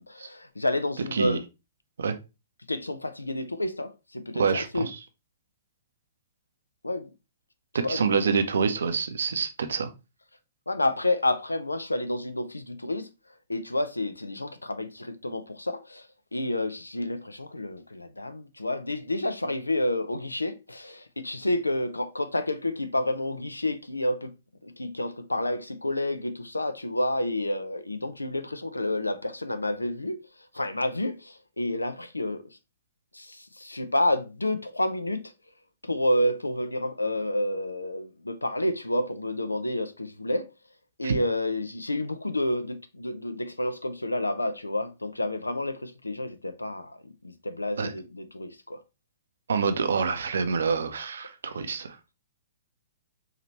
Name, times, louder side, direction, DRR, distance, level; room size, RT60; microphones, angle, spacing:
voice 1, 0.0-1.4 2.7-4.9 6.8-7.1 7.8-8.0 10.7-13.1 13.5-16.1 16.3-24.3 24.6-30.2 30.5-32.4 33.1-35.2 35.8-40.5 41.0-47.0 47.2-48.8 51.5-51.6, left 1 dB, 85° left, 0.4 m, -29 dB
voice 2, 4.3-5.0 7.9-9.9 41.0-41.2 47.8-47.9 49.5-52.0, right 5 dB, 65° right, 0.6 m, -26 dB
4.8 x 2.9 x 2.8 m
figure-of-eight pair, 115°, 0 cm